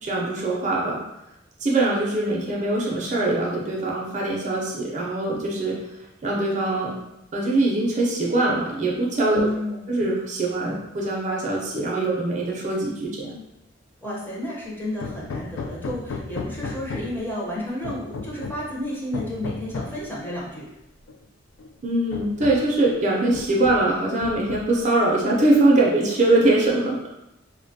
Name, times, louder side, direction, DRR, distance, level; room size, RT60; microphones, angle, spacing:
voice 1, 0.0-1.0 1.6-5.8 6.2-6.9 7.3-9.5 9.9-13.3 21.8-27.1, right 2 dB, 40° right, -3 dB, 0.5 m, -22 dB
voice 2, 9.3-9.9 14.0-20.7, left 1 dB, 10° left, -6 dB, 0.6 m, -31 dB
Hammer, 15.0-17.3 17.8-18.7 19.1-20.0 21.1-21.2 21.6-21.7 22.1-22.8 23.3-23.9 24.2-24.9, left 4 dB, 90° left, 0.3 m, -34 dB
3.0 x 2.1 x 2.6 m, 0.89 s
head